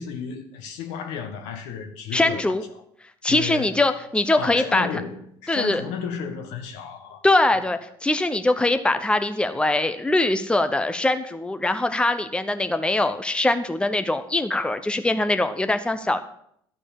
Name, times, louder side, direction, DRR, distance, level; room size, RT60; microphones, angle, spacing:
voice 1, 0.0-2.5 3.3-3.8 4.4-7.2, left 6 dB, 70° left, 1.6 m, -33 dB
voice 2, 2.1-2.6 3.2-4.9 5.5-5.8 7.2-16.2, left 2 dB, 10° left, 0.9 m, -22 dB
12.0 x 5.1 x 8.5 m
hypercardioid pair, 65°, 12 cm